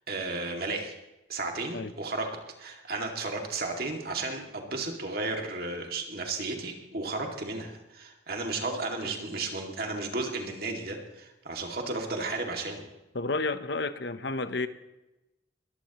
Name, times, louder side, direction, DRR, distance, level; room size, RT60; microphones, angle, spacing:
voice 1, 0.1-0.9 1.3-2.3 2.6-12.8, right 3 dB, 55° right, 2 dB, 2.4 m, -33 dB
voice 2, 13.1-14.7, left 3 dB, 65° left, 11 dB, 0.9 m, -31 dB
21.5 x 15.5 x 3.1 m, 0.98 s
head